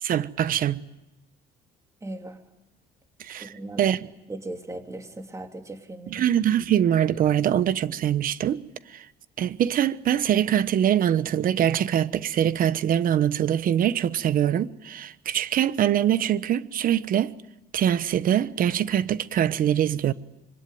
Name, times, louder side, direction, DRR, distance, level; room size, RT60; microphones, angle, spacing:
voice 1, 0.0-0.8 3.2-4.1 6.1-8.6 8.9-9.1 9.4-17.3 17.7-20.1, right 10 dB, 55° right, 1.1 m, -23 dB
voice 2, 2.0-2.4 3.4-3.8 4.3-6.2, right 2 dB, 20° right, 3.1 m, -38 dB
26.0 x 23.5 x 9.3 m
cardioid pair, 110°, 17 cm